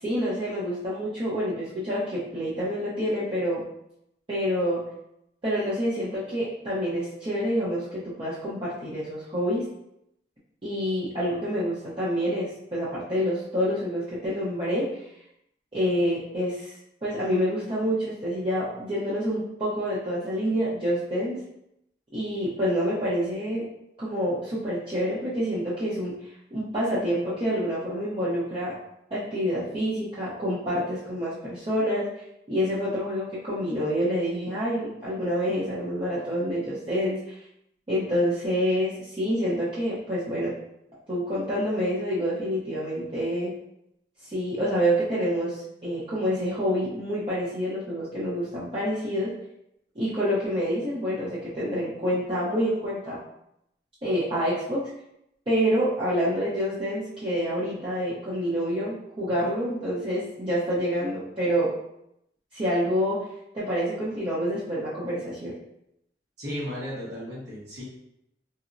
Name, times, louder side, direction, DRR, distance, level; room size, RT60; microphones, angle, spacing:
voice 1, 0.0-3.6 4.3-4.8 5.4-9.7 10.6-15.0 15.7-16.7 17.0-21.4 22.1-23.6 24.0-26.2 26.5-28.7 29.1-32.1 32.5-37.4 37.9-40.5 41.1-43.5 44.2-49.3 50.0-53.2 54.0-54.9 55.5-61.7 62.5-63.2 63.5-65.6, equal, 30° right, -10 dB, 0.6 m, -27 dB
voice 2, 66.4-67.8, equal, 75° right, -7 dB, 1.0 m, -34 dB
4.0 x 2.0 x 2.5 m, 0.80 s
head